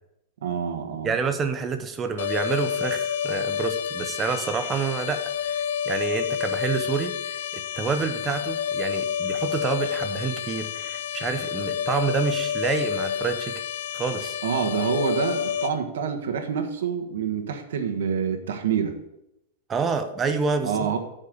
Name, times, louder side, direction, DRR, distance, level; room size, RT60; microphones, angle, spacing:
voice 1, 0.4-1.2 14.4-18.9 20.6-21.0, right 7 dB, 85° right, 5 dB, 1.5 m, -27 dB
voice 2, 1.0-5.6 5.9-13.6 13.9-14.4 19.7-20.9, right 5 dB, 15° right, 8 dB, 0.6 m, -28 dB
sound 1, 2.2-15.7, left 8 dB, 70° left, 0.6 m, -29 dB
10.0 x 5.5 x 6.7 m, 0.85 s
supercardioid pair, 180°, 0 cm